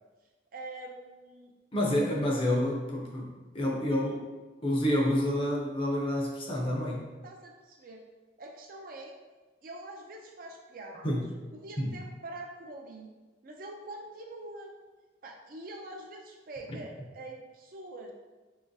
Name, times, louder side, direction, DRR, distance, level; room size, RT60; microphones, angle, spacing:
voice 1, 0.5-1.5 7.2-8.0 8.4-9.2 9.6-11.2 11.5-13.1 13.4-14.7 15.2-18.1, right 2 dB, 45° right, 1 dB, 0.4 m, -44 dB
voice 2, 1.7-4.2 4.6-7.1 11.0-11.3 11.8-11.9, left 1 dB, 30° left, -2 dB, 0.5 m, -28 dB
3.8 x 2.9 x 2.6 m, 1.2 s
head